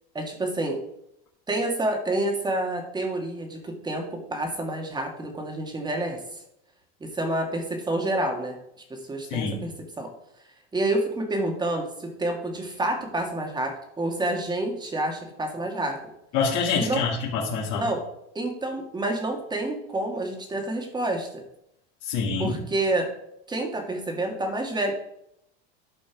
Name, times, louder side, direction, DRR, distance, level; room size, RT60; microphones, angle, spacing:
voice 1, 0.1-0.8 1.5-6.2 7.0-8.6 8.9-9.7 10.0-10.1 10.7-16.0 16.8-17.0 17.7-18.0 18.3-21.4 22.4-23.1 23.5-24.9, right 1 dB, 15° right, 3 dB, 2.0 m, -28 dB
voice 2, 9.3-9.7 16.3-17.8 22.0-22.6, left 5 dB, 55° left, -6 dB, 2.6 m, -26 dB
12.0 x 5.2 x 4.8 m, 0.78 s
supercardioid pair, 135°, 31 cm